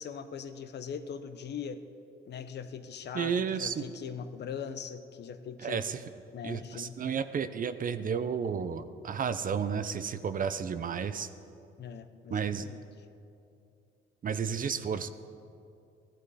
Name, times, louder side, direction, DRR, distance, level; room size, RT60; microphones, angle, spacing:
voice 1, 0.0-1.8 2.3-5.9 6.3-7.0 11.8-12.8, left 7 dB, 60° left, 10 dB, 0.7 m, -41 dB
voice 2, 3.1-3.8 5.6-6.0 6.4-11.3 12.3-12.7 14.2-15.1, right 7 dB, 45° right, 12 dB, 0.6 m, -32 dB
15.0 x 11.5 x 4.1 m, 2.6 s
cardioid pair, 90°, 20 cm